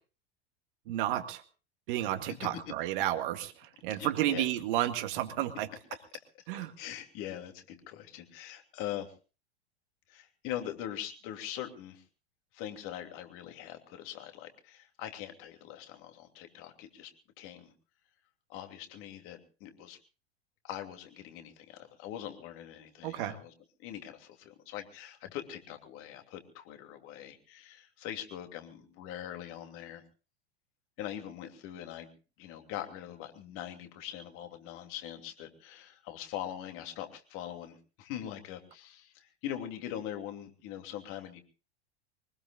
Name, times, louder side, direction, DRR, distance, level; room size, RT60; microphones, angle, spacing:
voice 1, 0.9-1.4 1.9-5.7 6.5-6.7 23.0-23.4, right 13 dB, 50° right, 8 dB, 2.0 m, -32 dB
voice 2, 3.9-4.4 6.5-9.1 10.1-12.0 12.5-17.1 17.4-17.7 18.5-20.0 20.6-23.5 23.8-30.0 31.0-32.1 32.4-41.4, left 11 dB, 40° left, 5 dB, 2.9 m, -42 dB
24.5 x 19.5 x 2.5 m, 0.35 s
figure-of-eight pair, 85°, 33 cm